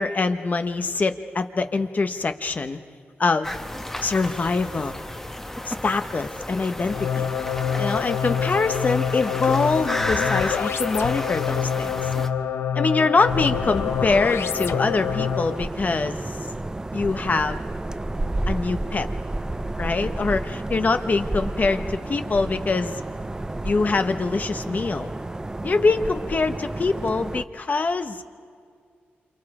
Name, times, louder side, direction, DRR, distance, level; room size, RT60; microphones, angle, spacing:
voice 1, 0.0-2.8 3.2-3.5 4.0-5.0 5.7-7.3 7.8-11.9 12.7-16.2 16.9-17.6 18.5-19.1 19.8-23.0 23.6-25.1 25.6-28.2, left 3 dB, 40° left, 8 dB, 1.0 m, -24 dB
sound 1, 3.4-12.3, left 1 dB, 10° left, 1.2 m, -32 dB
sound 2, 6.9-15.7, left 8 dB, 80° left, 0.6 m, -26 dB
sound 3, 13.3-27.4, right 2 dB, 15° right, 0.5 m, -31 dB
28.0 x 28.0 x 4.9 m, 2.2 s
wide cardioid pair, 105°, 4 cm